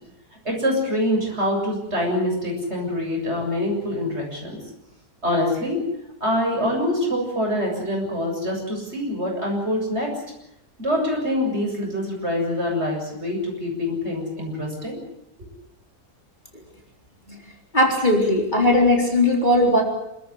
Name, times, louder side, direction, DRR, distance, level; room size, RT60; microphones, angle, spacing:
voice 1, 0.4-4.6 5.2-5.8 6.2-10.1 10.8-15.0, left 1 dB, 45° right, 0 dB, 7.6 m, -25 dB
voice 2, 17.7-19.8, left 1 dB, 30° left, 0 dB, 4.1 m, -18 dB
27.5 x 14.0 x 10.0 m, 0.83 s
omnidirectional pair, 1.6 m